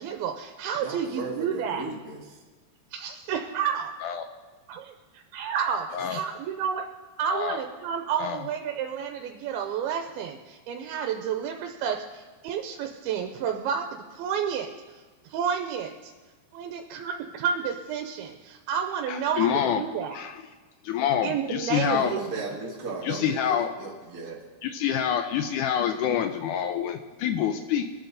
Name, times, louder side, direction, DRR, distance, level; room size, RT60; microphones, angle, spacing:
voice 1, 0.0-1.8 2.9-3.9 4.7-6.9 7.2-16.1 16.5-20.2 21.2-22.5, right 7 dB, 85° right, 3 dB, 2.6 m, -31 dB
voice 2, 0.8-2.4 21.8-24.4, right 3 dB, 30° right, -5 dB, 1.7 m, -36 dB
voice 3, 7.3-7.6 8.2-8.4 19.1-19.8 20.1-20.4 20.8-22.1 23.0-23.7 24.6-27.9, left 9 dB, 90° left, 7 dB, 1.7 m, -27 dB
24.0 x 9.2 x 4.0 m, 1.4 s
omnidirectional pair, 4.4 m